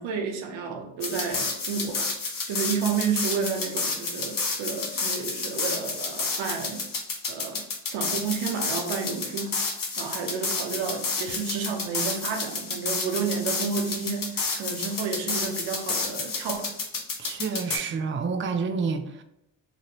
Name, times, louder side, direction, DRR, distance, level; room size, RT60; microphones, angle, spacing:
voice 1, 0.0-2.1 2.5-6.8 7.3-7.6 7.9-9.6 10.0-16.7, right 6 dB, 90° right, 4 dB, 0.6 m, -31 dB
sound 1, 1.0-17.8, left 4 dB, 45° left, 0.8 m, -30 dB
voice 2, 17.2-19.2, right 5 dB, 30° right, 8 dB, 0.4 m, -29 dB
3.0 x 2.5 x 2.8 m, 0.83 s
supercardioid pair, 45°, 44 cm